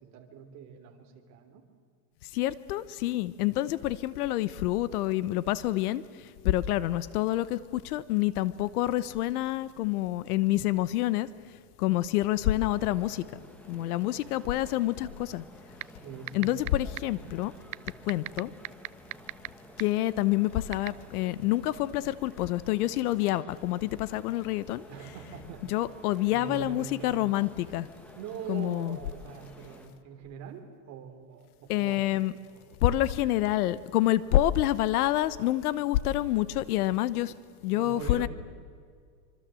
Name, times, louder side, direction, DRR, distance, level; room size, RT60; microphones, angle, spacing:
voice 1, 0.0-1.6 16.0-16.7 24.9-25.7 26.3-27.3 28.1-32.0 32.5-33.0 37.7-38.3, right 7 dB, 35° right, 3.3 m, -43 dB
voice 2, 2.3-11.3 11.8-13.2 13.7-15.4 16.3-17.5 18.0-18.5 19.8-24.8 25.7-27.9 28.5-29.0 31.7-32.3 32.8-37.3 37.6-38.3, left 15 dB, 70° left, 1.1 m, -27 dB
sound 1, 12.6-29.9, equal, 5° left, 2.0 m, -52 dB
sound 2, 15.8-15.9 16.3-16.7 17.0-17.1 17.7-19.5 19.8-19.9 20.7-20.9, right 21 dB, 70° right, 0.7 m, -32 dB
25.5 x 25.0 x 7.7 m
supercardioid pair, 160°, 47 cm